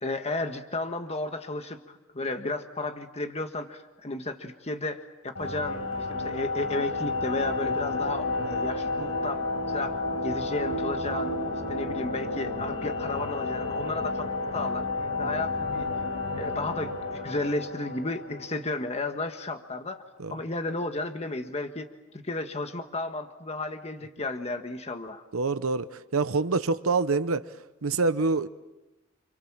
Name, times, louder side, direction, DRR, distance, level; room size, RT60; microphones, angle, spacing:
voice 1, 0.0-11.4 11.7-14.3 14.5-15.9 16.4-20.0 20.3-21.9 22.2-25.2, left 2 dB, 30° left, 1.4 m, -33 dB
sound 1, 5.4-18.9, left 3 dB, 80° left, 6.6 m, -31 dB
voice 2, 25.3-27.5 27.8-28.5, right 3 dB, 80° right, 0.9 m, -26 dB
29.5 x 27.0 x 7.4 m
head